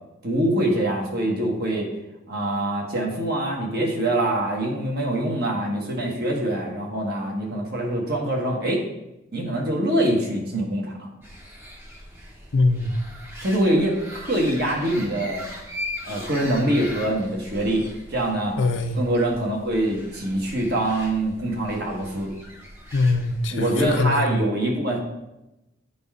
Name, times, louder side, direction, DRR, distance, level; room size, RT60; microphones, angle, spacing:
voice 1, 0.2-1.9 2.3-8.8 9.3-11.1 13.4-15.4 16.1-17.8 18.1-18.6 19.0-22.3 23.5-25.0, right 1 dB, 50° right, -1 dB, 1.4 m, -24 dB
sound 1, 11.2-24.1, left 1 dB, 10° right, 0.8 m, -40 dB
voice 2, 12.5-13.0 18.6-19.0 22.9-24.3, left 3 dB, 65° left, 6 dB, 0.6 m, -22 dB
10.0 x 4.1 x 3.6 m, 0.94 s
head